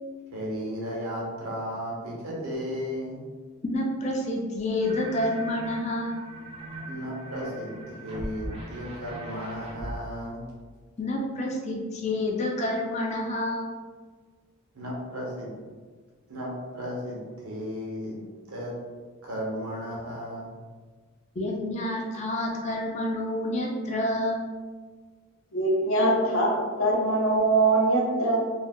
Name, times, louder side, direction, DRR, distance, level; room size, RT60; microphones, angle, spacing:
voice 1, 0.3-3.2 6.9-10.4 14.7-15.7 16.3-18.2 18.5-18.7 19.2-20.5, equal, 85° right, -3 dB, 0.9 m, -34 dB
voice 2, 3.6-6.2 11.0-13.7 21.4-24.4, left 1 dB, 30° left, 0 dB, 0.4 m, -28 dB
sound 1, 4.8-10.0, right 1 dB, 25° right, 0.5 m, -40 dB
voice 3, 25.5-28.4, right 2 dB, 65° left, -2 dB, 0.7 m, -22 dB
2.7 x 2.1 x 3.5 m, 1.4 s
head